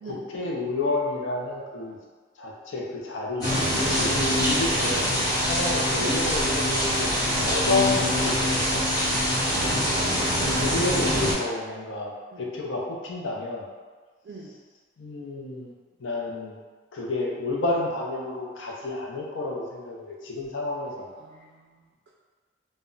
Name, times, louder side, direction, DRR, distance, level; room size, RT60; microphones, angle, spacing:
voice 1, 0.1-2.0 2.4-3.5 3.9-5.1 5.5-8.2 8.4-8.9 9.9-10.0 10.6-12.1 12.4-13.6 15.0-15.7 16.0-16.6 16.9-21.1, left 2 dB, 85° left, -2 dB, 0.5 m, -30 dB
sound 1, 3.4-11.3, equal, 20° left, 0.8 m, -24 dB
voice 2, 9.5-9.8 12.3-12.5 14.2-14.5 21.2-22.1, right 3 dB, 55° right, -3 dB, 0.3 m, -44 dB
2.1 x 2.1 x 3.7 m, 1.4 s
head